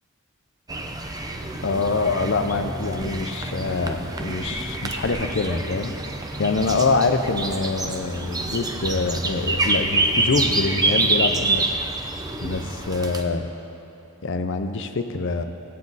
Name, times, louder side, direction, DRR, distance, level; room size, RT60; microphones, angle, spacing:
sound 1, 0.7-13.2, right 2 dB, 20° right, 0.6 m, -26 dB
voice 1, 1.6-5.9 6.4-12.0 12.4-13.5 14.2-15.4, left 3 dB, 60° left, 8 dB, 0.6 m, -25 dB
16.0 x 8.5 x 4.0 m, 2.8 s
head